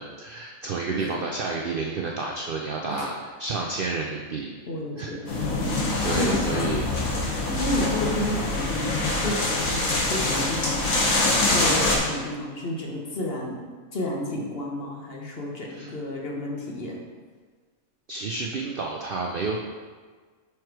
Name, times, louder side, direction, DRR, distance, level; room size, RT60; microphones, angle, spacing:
voice 1, 0.0-4.5 5.0-5.5 6.0-6.9 15.7-16.0 18.1-19.6, right 3 dB, 60° right, 0 dB, 0.5 m, -30 dB
voice 2, 4.7-5.5 6.1-6.3 7.5-13.6 13.9-17.0, left 1 dB, 45° left, -2 dB, 1.2 m, -31 dB
sound 1, 5.3-12.0, left 2 dB, 70° left, 1.6 m, -24 dB
5.9 x 4.7 x 4.6 m, 1.5 s
omnidirectional pair, 1.5 m